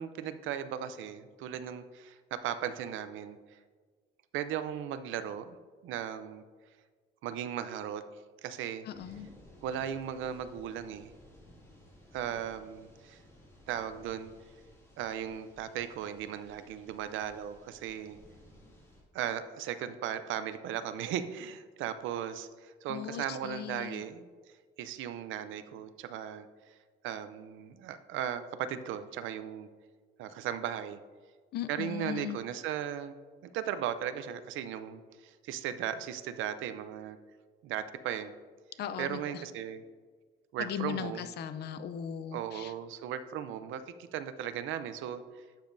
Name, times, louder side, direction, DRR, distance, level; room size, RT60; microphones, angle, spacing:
voice 1, 0.0-3.6 4.3-5.6 5.8-6.4 7.2-8.0 8.4-8.9 9.6-11.1 12.1-13.2 13.7-14.3 15.0-18.2 19.1-24.3 24.8-26.7 27.0-29.7 30.2-31.0 31.7-33.2 33.4-37.2 37.6-38.3 39.0-39.8 40.5-41.3 42.3-45.2, right 9 dB, 70° right, 11 dB, 0.6 m, -37 dB
voice 2, 8.9-9.3 22.9-24.0 31.5-32.4 38.8-39.4 40.6-42.7, left 9 dB, 50° left, 11 dB, 0.6 m, -38 dB
sound 1, 8.9-19.0, left 1 dB, 10° left, 2.1 m, -57 dB
11.5 x 7.3 x 2.6 m, 1.5 s
cardioid pair, 165°, 21 cm